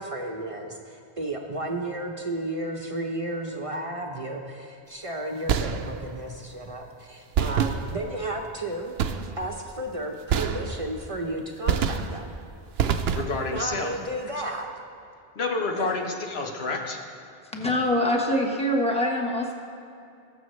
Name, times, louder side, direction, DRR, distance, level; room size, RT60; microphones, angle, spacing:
voice 1, 0.0-8.9 9.4-12.3 13.5-14.7 15.8-15.9, right 1 dB, 35° right, 1 dB, 0.8 m, -33 dB
sound 1, 5.5-6.2 7.3-8.3 9.0-9.6 10.3-11.1 11.7-12.4 12.8-13.6, right 7 dB, 75° right, 0.8 m, -27 dB
voice 2, 13.1-13.9 15.3-17.0, left 3 dB, 85° left, 2 dB, 1.3 m, -29 dB
voice 3, 17.5-19.5, left 1 dB, 5° left, -1 dB, 1.2 m, -24 dB
20.5 x 7.0 x 3.2 m, 2.6 s
omnidirectional pair, 1.0 m